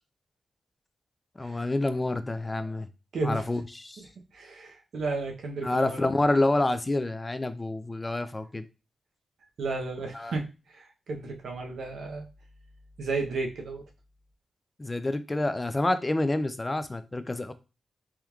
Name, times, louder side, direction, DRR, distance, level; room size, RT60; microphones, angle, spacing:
voice 1, 1.4-2.9 3.2-4.0 5.6-8.6 10.1-10.3 14.8-17.5, left 2 dB, 20° left, 0.4 m, -28 dB
voice 2, 3.1-3.5 4.0-4.1 4.3-6.1 8.0-8.1 9.6-12.2 13.0-13.8, right 3 dB, 80° right, 0.7 m, -33 dB
3.5 x 2.9 x 2.3 m
cardioid pair, 75°, 0 cm